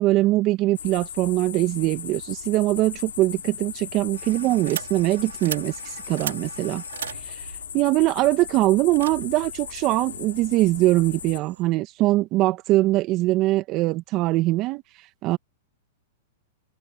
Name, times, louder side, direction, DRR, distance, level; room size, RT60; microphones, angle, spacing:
voice 1, 0.0-5.7 6.1-6.8 7.3-7.4 7.7-14.8 15.2-15.4, right 18 dB, 40° right, 2.0 m, -22 dB
sound 1, 0.7-11.4, left 8 dB, 85° left, 5.7 m, -38 dB
sound 2, 4.1-11.6, right 9 dB, 85° right, 6.5 m, -39 dB
open air
hypercardioid pair, 125°, 0 cm